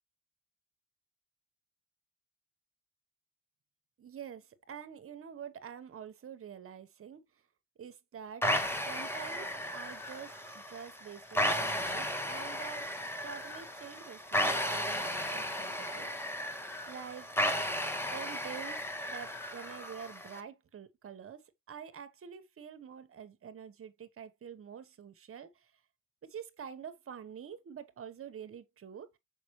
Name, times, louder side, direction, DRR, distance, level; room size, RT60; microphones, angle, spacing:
voice 1, 4.0-7.2 7.8-8.5 8.8-12.9 13.2-16.1 16.9-17.3 18.0-25.7 26.2-29.2, right 8 dB, 45° right, 1.1 m, -47 dB
sound 1, 8.4-20.4, equal, 10° left, 1.4 m, -34 dB
6.0 x 5.3 x 3.1 m
cardioid pair, 90°, 30 cm